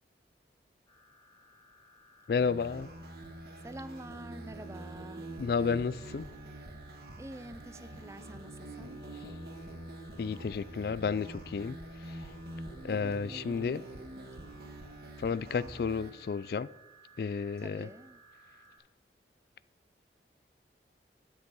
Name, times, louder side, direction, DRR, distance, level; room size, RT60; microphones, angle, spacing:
sound 1, 0.9-18.8, right 2 dB, 20° left, 2.9 m, -60 dB
voice 1, 2.3-2.9 5.4-6.3 10.2-11.8 12.8-13.8 15.2-16.7 17.2-17.9, left 5 dB, 55° left, 0.3 m, -31 dB
sound 2, 2.4-16.1, right 1 dB, 60° right, 1.5 m, -45 dB
voice 2, 3.6-5.3 7.2-9.0 17.6-18.2, right 1 dB, 15° right, 0.4 m, -47 dB
12.0 x 8.0 x 5.4 m
head